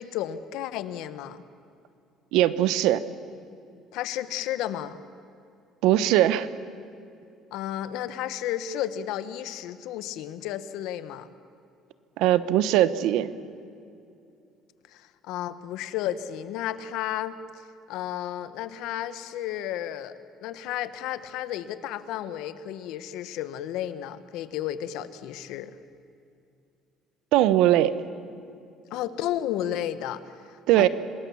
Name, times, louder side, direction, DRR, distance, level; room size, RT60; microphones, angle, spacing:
voice 1, 0.0-1.4 3.9-5.0 7.5-11.3 14.9-17.4 17.9-20.1 20.4-25.8 28.9-30.2 30.5-30.9, left 11 dB, 70° left, 13 dB, 1.1 m, -32 dB
voice 2, 2.3-3.0 5.8-6.5 12.2-13.3 27.3-27.9 30.7-30.9, right 13 dB, 75° right, 14 dB, 1.0 m, -20 dB
27.0 x 20.0 x 7.2 m, 2.5 s
cardioid pair, 165°, 0 cm